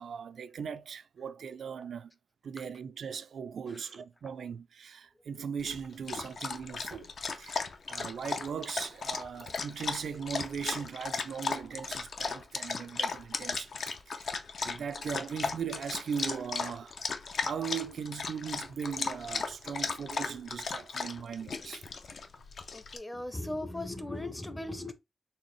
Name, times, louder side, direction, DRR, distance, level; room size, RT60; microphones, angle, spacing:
voice 1, 0.0-2.1 2.4-7.1 7.4-13.8 14.1-16.9 17.4-21.8, right 7 dB, 90° right, 0.3 m, -39 dB
Dog, 5.6-23.0, left 4 dB, 65° left, 0.5 m, -36 dB
voice 2, 22.7-24.9, left 1 dB, 15° left, 0.5 m, -37 dB
4.2 x 3.3 x 3.0 m
wide cardioid pair, 135°, 0 cm